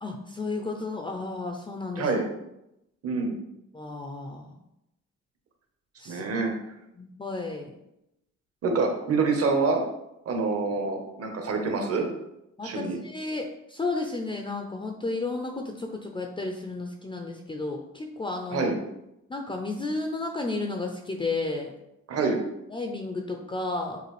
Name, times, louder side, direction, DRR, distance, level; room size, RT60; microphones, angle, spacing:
voice 1, 0.0-2.1 3.7-4.5 6.0-6.2 7.0-7.7 12.6-18.7 19.3-21.7 22.7-24.0, left 3 dB, 15° left, 2 dB, 0.5 m, -32 dB
voice 2, 3.0-3.4 6.1-6.5 8.6-9.8 10.3-12.1 12.6-13.0 18.5-18.7 22.1-22.4, right 4 dB, 50° right, 3 dB, 1.0 m, -26 dB
6.6 x 2.4 x 3.2 m, 0.86 s
cardioid pair, 90°, 30 cm